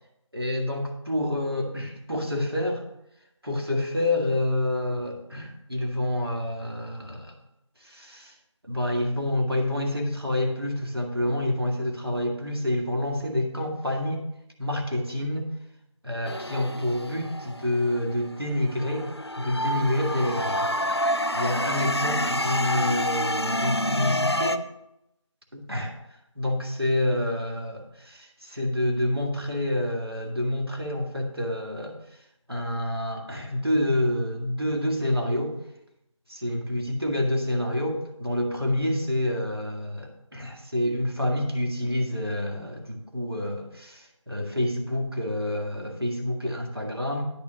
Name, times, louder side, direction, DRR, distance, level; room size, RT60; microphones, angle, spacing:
voice 1, 0.3-2.8 3.4-7.3 7.8-8.3 8.6-14.2 14.6-15.5 16.0-19.1 19.4-20.7 21.3-24.6 25.5-25.9 26.4-32.0 32.5-35.6 36.3-47.2, left 1 dB, 50° right, 1 dB, 1.8 m, -28 dB
sound 1, 16.2-18.2 18.7-24.6, left 1 dB, 55° left, 0.5 m, -28 dB
10.5 x 4.2 x 6.8 m, 0.81 s
figure-of-eight pair, 180°, 16 cm